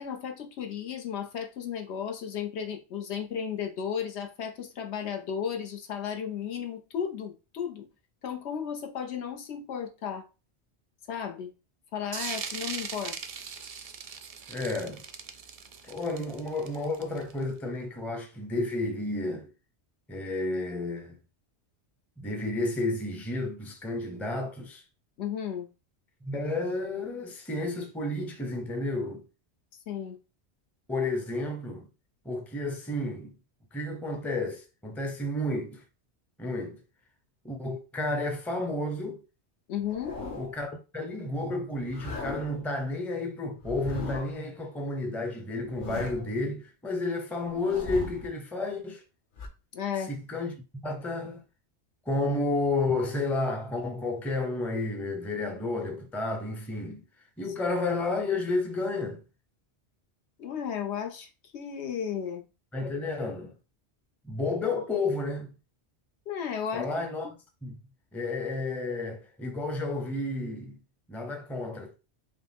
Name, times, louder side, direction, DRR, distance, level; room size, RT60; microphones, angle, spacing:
voice 1, 0.0-7.9 8.2-10.3 11.1-11.5 11.9-13.2 25.2-25.7 29.9-30.2 39.7-40.2 49.7-50.1 60.4-62.4 66.3-66.9, left 8 dB, 75° left, 1.0 m, -34 dB
sound 1, 12.1-17.4, right 6 dB, 60° right, 0.4 m, -39 dB
voice 2, 14.5-15.0 15.9-19.5 20.1-21.2 22.2-24.8 26.2-29.2 30.9-31.9 32.2-33.3 33.7-35.8 36.4-36.8 37.4-39.2 40.3-49.0 50.1-50.6 50.8-51.4 52.1-57.0 57.4-59.2 62.7-63.5 64.2-65.5 66.7-67.3 67.6-67.8 68.1-70.8 71.1-71.9, left 2 dB, ahead, 0.5 m, -31 dB
sound 2, 39.8-40.7 41.8-42.7 43.6-44.5 45.5-46.4 47.5-48.3 49.4-49.5, left 3 dB, 50° left, 0.9 m, -39 dB
5.4 x 2.1 x 3.4 m
omnidirectional pair, 1.2 m